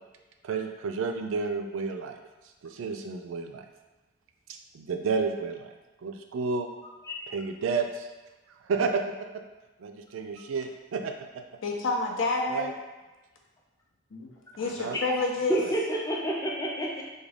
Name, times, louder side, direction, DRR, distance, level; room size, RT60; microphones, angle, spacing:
voice 1, 0.4-2.2 2.6-3.6 4.5-5.7 6.0-6.7 7.3-8.1 8.7-9.0 9.8-11.1 12.5-12.7 14.6-15.0 15.6-15.7, right 5 dB, 80° right, 5 dB, 0.3 m, -31 dB
voice 2, 11.6-12.7 14.1-14.3 14.6-15.6, left 3 dB, 80° left, 0 dB, 0.6 m, -28 dB
voice 3, 15.5-17.0, right 1 dB, 15° left, -2 dB, 0.4 m, -29 dB
3.5 x 2.3 x 3.3 m, 1.1 s
head